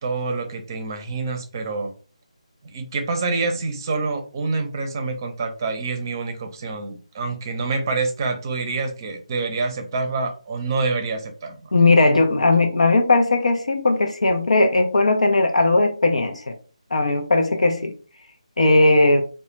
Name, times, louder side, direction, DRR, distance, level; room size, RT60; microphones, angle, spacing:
voice 1, 0.0-1.9 2.6-11.7, right 3 dB, 30° right, 6 dB, 0.6 m, -27 dB
voice 2, 11.7-16.5 16.9-17.9 18.6-19.2, left 2 dB, 65° left, 6 dB, 0.5 m, -18 dB
2.4 x 2.2 x 3.0 m, 0.37 s
figure-of-eight pair, 150°, 4 cm